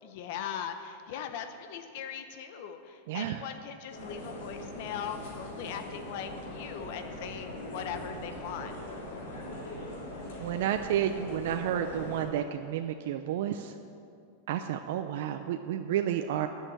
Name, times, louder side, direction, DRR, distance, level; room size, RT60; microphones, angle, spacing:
voice 1, 0.0-8.8, left 8 dB, 50° left, 8 dB, 0.8 m, -40 dB
sound 1, 3.9-12.3, left 1 dB, 70° left, 3.2 m, -41 dB
voice 2, 10.4-13.7 14.5-16.5, right 10 dB, 60° right, 6 dB, 0.5 m, -31 dB
10.5 x 6.6 x 8.8 m, 2.5 s
supercardioid pair, 170°, 0 cm